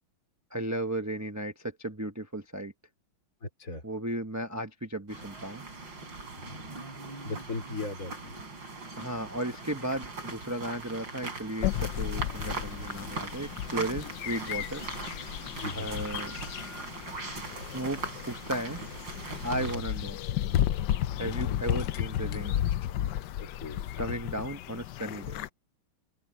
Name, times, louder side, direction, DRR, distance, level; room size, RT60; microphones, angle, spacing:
voice 1, 0.5-2.7 3.8-5.6 9.0-14.8 15.7-16.4 17.7-18.8 19.4-20.2 21.1-22.6 24.0-25.4, right 1 dB, 15° right, 0.6 m, -35 dB
voice 2, 3.4-3.8 6.3-8.4 15.6-15.9 19.5-19.8 21.3-21.6 23.4-23.8, left 3 dB, 40° left, 4.3 m, -39 dB
sound 1, 5.1-19.8, right 3 dB, 65° right, 5.8 m, -40 dB
sound 2, 11.6-25.5, left 11 dB, 70° left, 1.2 m, -33 dB
open air
omnidirectional pair, 2.2 m